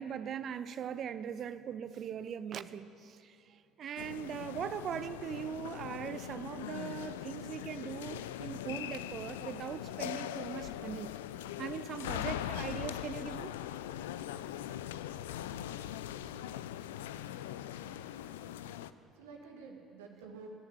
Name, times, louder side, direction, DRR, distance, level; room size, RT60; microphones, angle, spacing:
voice 1, 0.0-11.1 11.6-13.6, right 8 dB, 45° right, 13 dB, 0.6 m, -40 dB
sound 1, 4.0-18.9, left 11 dB, 70° left, 0.4 m, -41 dB
voice 2, 15.1-16.6 17.0-18.1 19.1-20.5, right 5 dB, 70° right, 2 dB, 1.8 m, -54 dB
20.0 x 7.2 x 9.0 m, 2.7 s
figure-of-eight pair, 60°, 0 cm